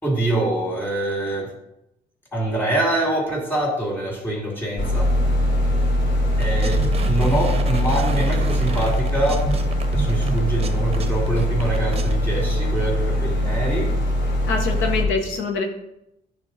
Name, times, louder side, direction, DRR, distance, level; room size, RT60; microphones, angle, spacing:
voice 1, 0.0-1.5 2.3-5.1 6.4-9.5 9.9-13.9, right 2 dB, 10° left, -1 dB, 2.4 m, -24 dB
sound 1, 4.8-15.0, left 1 dB, 65° left, 2.0 m, -22 dB
sound 2, 6.4-12.2, right 5 dB, 30° right, 0.6 m, -30 dB
voice 2, 14.4-15.6, left 4 dB, 85° left, 4 dB, 0.9 m, -24 dB
9.7 x 3.6 x 4.0 m, 0.85 s
cardioid pair, 90°, 20 cm